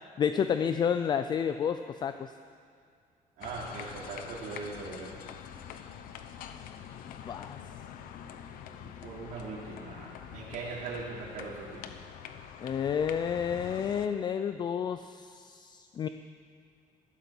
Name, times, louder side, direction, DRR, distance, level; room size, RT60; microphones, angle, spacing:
voice 1, 0.2-2.3 7.1-7.6 12.6-16.1, left 7 dB, 30° left, 10 dB, 0.4 m, -30 dB
sound 1, 3.4-14.1, left 9 dB, 85° left, 1.0 m, -45 dB
voice 2, 3.4-5.2 8.7-11.9, right 3 dB, 70° right, -7 dB, 3.1 m, -40 dB
15.0 x 12.5 x 7.1 m, 2.3 s
cardioid pair, 170°, 14 cm